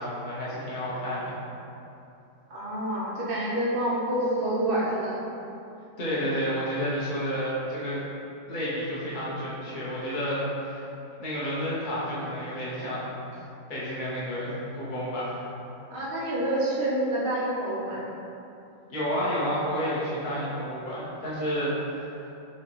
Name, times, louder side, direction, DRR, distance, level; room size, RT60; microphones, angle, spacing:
voice 1, 0.0-1.4 6.0-8.0 8.5-10.8 11.2-13.1 13.7-15.4 18.9-22.1, equal, 35° left, -9 dB, 0.9 m, -30 dB
voice 2, 2.5-5.2 15.9-18.1, right 1 dB, 55° right, -6 dB, 0.6 m, -27 dB
6.2 x 2.4 x 2.9 m, 2.9 s
omnidirectional pair, 2.0 m